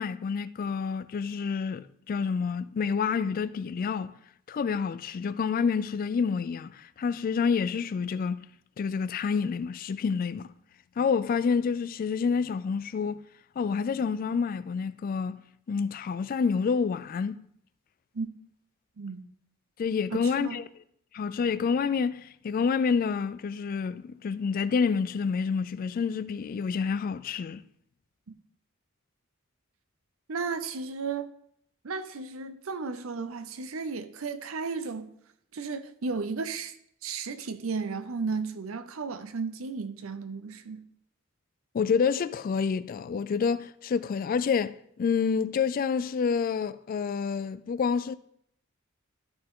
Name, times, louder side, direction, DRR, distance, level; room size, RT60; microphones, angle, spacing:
voice 1, 0.0-4.2 4.5-8.5 8.8-10.5 11.0-13.2 13.6-15.4 15.7-17.4 19.8-20.6 21.1-27.6 41.7-48.1, left 5 dB, 45° left, 0.3 m, -28 dB
voice 2, 20.1-20.6 28.3-28.4 30.3-31.3 31.8-35.1 35.5-36.8 37.0-40.8, right 4 dB, 75° right, 0.6 m, -34 dB
12.5 x 4.4 x 3.7 m
head